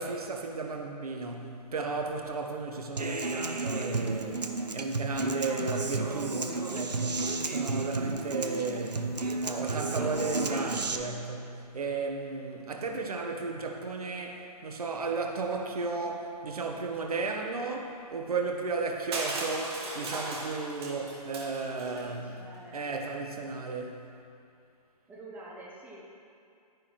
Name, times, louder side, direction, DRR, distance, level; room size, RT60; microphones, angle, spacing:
voice 1, 0.0-9.1 9.4-22.3 22.7-24.1, right 3 dB, 65° right, 2 dB, 1.2 m, -34 dB
Human voice / Acoustic guitar, 3.0-11.0, right 3 dB, 85° right, 0.7 m, -32 dB
Crushing, 19.1-22.0, right 2 dB, 40° right, 1.7 m, -37 dB
voice 2, 21.9-22.8 25.1-26.0, right 2 dB, 10° right, -4 dB, 0.9 m, -47 dB
10.5 x 9.8 x 3.1 m, 2.5 s
figure-of-eight pair, 135°, 21 cm